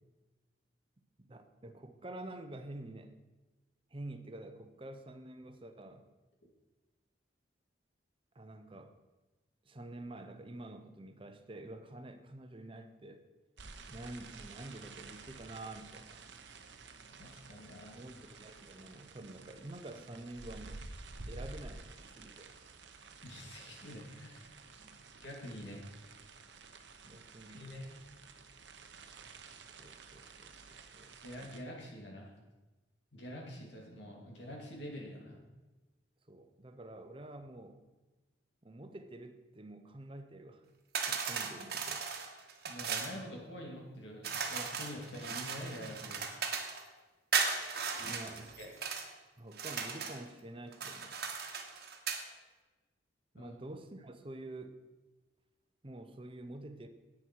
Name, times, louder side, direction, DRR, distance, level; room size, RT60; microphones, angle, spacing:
voice 1, 1.2-3.1 3.9-6.1 8.3-9.0 9.6-13.2 13.9-16.2 17.9-20.8 21.3-22.6 24.8-25.0 27.0-27.7 29.8-31.2 36.3-37.8 38.6-40.6 41.0-42.1 48.0-48.5 49.4-51.2 53.3-54.8 55.8-56.9, right 1 dB, 30° right, 7 dB, 0.8 m, -48 dB
sound 1, 13.6-31.6, right 3 dB, 70° right, 0.9 m, -52 dB
voice 2, 17.2-18.0 23.2-24.5 25.2-25.9 27.5-27.9 31.2-32.3 33.1-35.4 42.6-46.2 48.0-48.1 48.6-48.7 53.4-53.5, equal, 75° left, -1 dB, 2.6 m, -46 dB
sound 2, 40.9-43.2 44.2-46.8 47.3-49.1 49.5-50.2 50.7-52.2, right 5 dB, 55° right, 1.3 m, -37 dB
10.5 x 8.8 x 4.6 m, 1.2 s
head